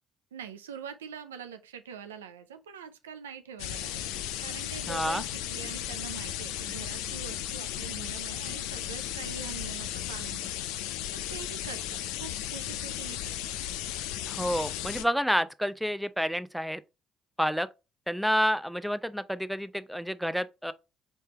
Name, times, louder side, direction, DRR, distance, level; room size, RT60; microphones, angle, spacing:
voice 1, 0.3-13.5, right 7 dB, 85° right, 0.4 m, -44 dB
sound 1, 3.6-15.0, left 12 dB, 75° left, 0.4 m, -35 dB
voice 2, 4.9-5.2 14.3-16.8 17.4-17.7 18.1-20.7, equal, ahead, 0.4 m, -29 dB
4.5 x 3.3 x 2.9 m
hypercardioid pair, 50°, 0 cm